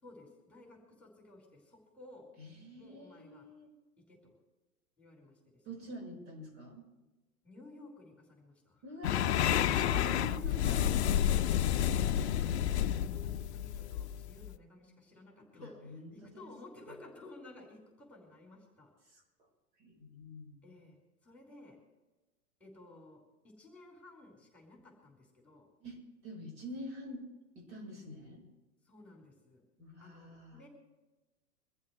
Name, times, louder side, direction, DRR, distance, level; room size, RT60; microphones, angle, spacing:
voice 1, 0.0-2.3 2.8-3.5 4.1-4.4 5.0-5.8 7.4-8.8 11.3-18.9 20.6-21.8 22.6-23.2 23.6-25.7 28.8-29.6 30.0-30.7, left 2 dB, 5° left, -1 dB, 5.1 m, -55 dB
voice 2, 2.4-3.7 5.7-6.9 8.8-11.1 15.6-16.5 19.1-19.2 19.8-20.5 25.8-27.2 27.6-28.4 29.8-30.6, equal, 45° right, 1 dB, 5.3 m, -46 dB
sound 1, 9.0-14.5, left 10 dB, 45° left, 0.7 m, -30 dB
24.0 x 14.5 x 3.3 m, 1.1 s
figure-of-eight pair, 105°, 47 cm